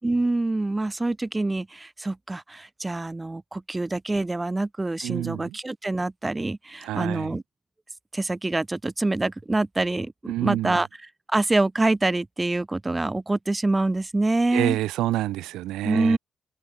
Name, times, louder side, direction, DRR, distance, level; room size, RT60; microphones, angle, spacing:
voice 1, 0.0-7.4 8.1-10.9 11.3-14.8 15.8-16.2, right 2 dB, 15° right, 3.4 m, -25 dB
voice 2, 5.0-5.6 6.8-7.3 10.3-10.8 14.5-16.2, right 15 dB, 90° right, 3.4 m, -27 dB
cardioid pair, 90°, 0 cm